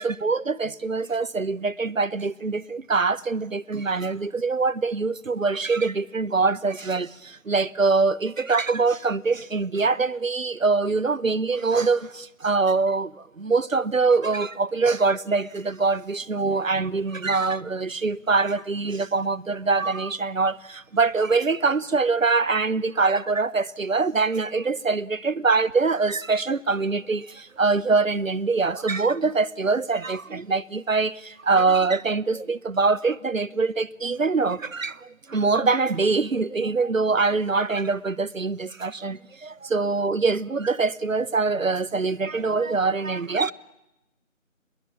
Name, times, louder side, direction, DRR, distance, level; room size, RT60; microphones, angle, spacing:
voice 1, 0.0-43.5, right 4 dB, 90° right, 0.9 m, -24 dB
25.0 x 21.0 x 7.4 m
figure-of-eight pair, 170°, 39 cm